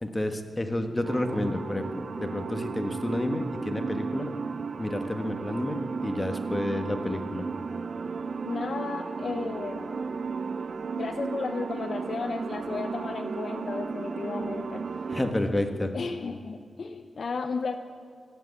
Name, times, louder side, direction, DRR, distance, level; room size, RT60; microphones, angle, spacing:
voice 1, 0.0-4.3 4.8-7.5 15.1-15.9, left 1 dB, 20° left, 6 dB, 1.4 m, -30 dB
sound 1, 1.0-15.3, right 5 dB, 60° right, 0.5 m, -34 dB
voice 2, 8.4-10.0 10.9-14.8 15.9-17.8, left 4 dB, 60° left, 8 dB, 0.7 m, -34 dB
16.5 x 7.8 x 8.4 m, 2.1 s
cardioid pair, 75°, 0 cm